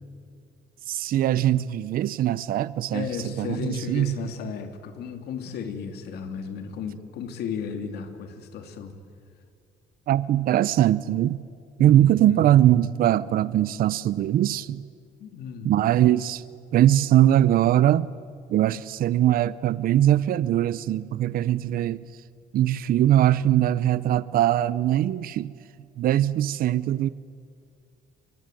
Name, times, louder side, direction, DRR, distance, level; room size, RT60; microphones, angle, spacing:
voice 1, 0.9-4.3 10.1-11.4 11.8-14.8 15.6-16.4 16.7-18.1 18.5-22.0 22.5-25.5 26.0-27.1, right 12 dB, 60° right, 0.6 m, -21 dB
voice 2, 2.9-9.0 11.8-12.5 15.2-15.7, left 6 dB, 75° left, 2.8 m, -34 dB
23.5 x 23.5 x 9.1 m
cardioid pair, 110°, 17 cm